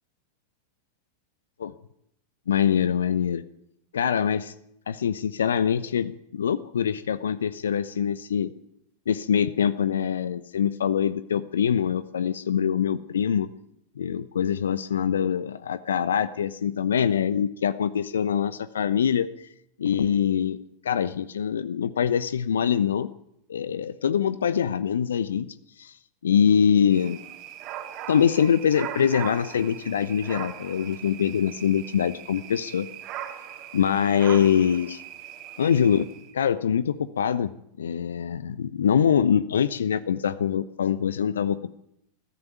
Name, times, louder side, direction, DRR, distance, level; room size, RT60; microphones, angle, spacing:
voice 1, 2.5-3.4 3.9-4.5 4.9-8.5 9.1-13.5 14.0-19.5 19.8-20.6 20.8-23.1 23.5-25.5 25.8-25.9 26.2-27.2 28.1-32.9 33.7-35.0 35.6-36.1 36.3-37.5 37.8-41.7, left 8 dB, 65° left, 15 dB, 0.9 m, -24 dB
sound 1, 26.9-36.3, right 11 dB, 40° right, 3.0 m, -40 dB
22.0 x 14.5 x 9.3 m, 0.78 s
figure-of-eight pair, 90°, 0 cm